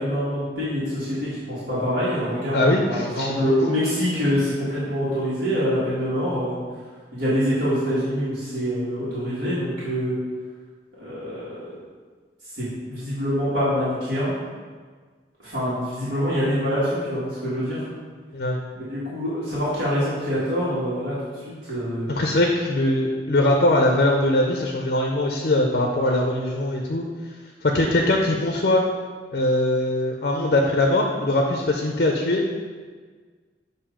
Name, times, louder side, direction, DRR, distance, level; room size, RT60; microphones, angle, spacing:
voice 1, 0.0-6.5 7.1-10.1 11.0-11.4 12.5-14.4 15.4-17.8 18.7-22.1, equal, 75° right, -11 dB, 1.6 m, -25 dB
voice 2, 2.5-3.5 18.3-18.6 22.1-27.0 27.6-28.8 29.3-32.4, left 1 dB, 50° left, 1 dB, 0.5 m, -21 dB
7.2 x 2.7 x 4.9 m, 1.5 s
head